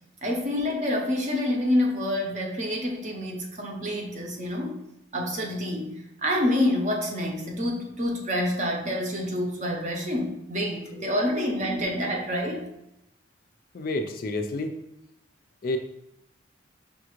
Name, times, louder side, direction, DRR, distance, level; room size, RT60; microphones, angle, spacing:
voice 1, 0.2-4.8 5.1-5.9 6.2-12.6, left 1 dB, 35° right, 1 dB, 0.6 m, -27 dB
voice 2, 13.7-14.7 15.6-15.8, left 2 dB, 45° left, 5 dB, 0.3 m, -29 dB
5.6 x 2.4 x 3.0 m, 0.83 s
head